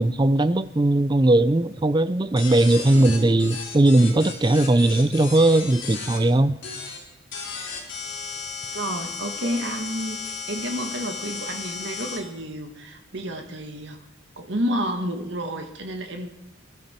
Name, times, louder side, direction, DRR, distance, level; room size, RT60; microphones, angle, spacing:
voice 1, 0.0-6.6, right 1 dB, 20° right, 0.4 m, -19 dB
sound 1, 2.4-6.2 6.6-7.0 7.3-12.2, left 5 dB, 70° left, 3.6 m, -34 dB
voice 2, 8.7-14.0 14.4-16.3, equal, 65° right, 1.6 m, -30 dB
21.5 x 12.0 x 4.4 m
head